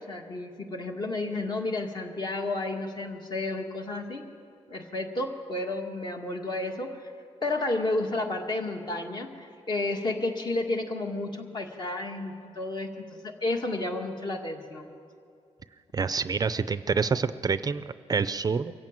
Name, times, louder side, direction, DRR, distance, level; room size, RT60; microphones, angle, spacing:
voice 1, 0.1-4.3 4.7-7.1 7.4-14.9, left 2 dB, 40° left, 2 dB, 2.1 m, -31 dB
voice 2, 15.9-17.8 18.1-18.7, right 5 dB, 35° right, 13 dB, 0.5 m, -27 dB
23.5 x 15.0 x 9.0 m, 2.3 s
wide cardioid pair, 165°, 12 cm